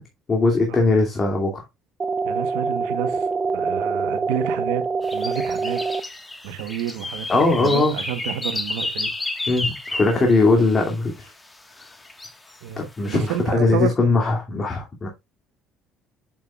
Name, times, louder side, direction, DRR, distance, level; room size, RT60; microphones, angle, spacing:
voice 1, 0.3-1.6 7.3-7.9 9.5-11.3 12.8-15.1, left 3 dB, 30° left, 2.5 m, -20 dB
sound 1, 2.0-6.0, right 4 dB, 25° right, 0.7 m, -25 dB
voice 2, 2.2-3.3 3.5-4.9 5.1-5.8 6.4-9.1 10.3-10.5 12.6-13.9, right 11 dB, 90° right, 1.1 m, -30 dB
sound 2, 5.0-10.9 11.8-12.6 13.0-13.4, left 2 dB, 15° left, 1.5 m, -31 dB
7.5 x 7.4 x 2.4 m
supercardioid pair, 95°, 0 cm